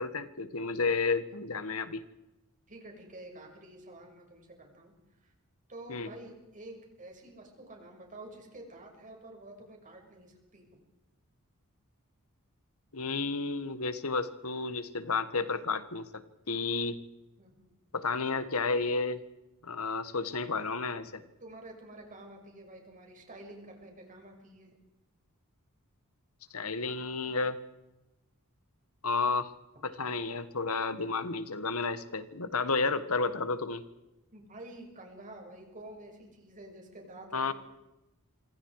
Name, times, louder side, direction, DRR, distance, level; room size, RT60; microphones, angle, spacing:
voice 1, 0.0-2.0 5.9-6.1 12.9-16.1 16.5-17.0 17.9-19.2 19.6-21.1 26.5-27.6 29.0-29.5 29.8-33.8 37.3-37.5, left 4 dB, 70° left, 12 dB, 1.7 m, -31 dB
voice 2, 2.7-4.9 5.2-5.3 5.7-10.7 17.4-17.7 21.0-21.1 21.4-24.7 34.3-37.5, right 1 dB, 35° right, 2 dB, 6.3 m, -49 dB
27.0 x 24.5 x 5.0 m, 0.99 s
head